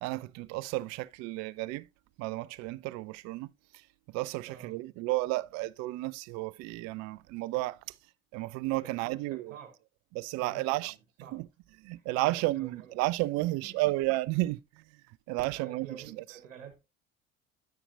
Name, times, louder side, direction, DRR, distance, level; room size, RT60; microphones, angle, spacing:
voice 1, 0.0-1.9 2.2-3.5 4.1-7.8 8.3-9.6 10.1-10.9 11.3-11.5 11.8-14.6 15.3-16.2, right 19 dB, 45° right, 0.5 m, -32 dB
voice 2, 9.0-9.8 10.4-11.4 11.9-12.9 13.4-13.9 15.4-16.9, right 8 dB, 75° right, 1.1 m, -50 dB
9.8 x 9.3 x 2.5 m
figure-of-eight pair, 60°, 38 cm